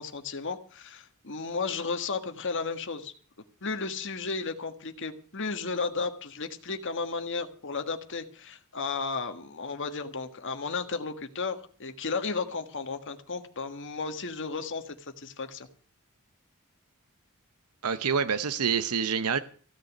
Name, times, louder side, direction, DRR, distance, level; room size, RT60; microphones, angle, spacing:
voice 1, 0.0-3.1 3.6-15.7, left 4 dB, 55° left, 8 dB, 1.6 m, -34 dB
voice 2, 17.8-19.4, right 6 dB, 80° right, 12 dB, 0.7 m, -27 dB
15.5 x 6.6 x 9.8 m, 0.44 s
head